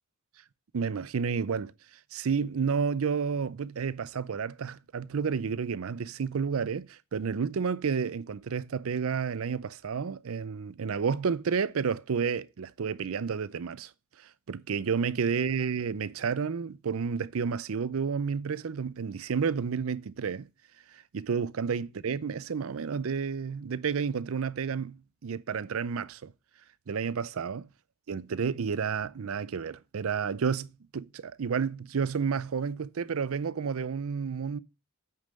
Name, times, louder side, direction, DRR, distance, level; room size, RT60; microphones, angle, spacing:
voice 1, 0.7-1.7 2.1-13.9 14.5-20.5 21.1-26.3 26.9-27.7 28.1-34.6, right 6 dB, 80° right, 0.5 m, -31 dB
8.2 x 5.6 x 5.1 m
head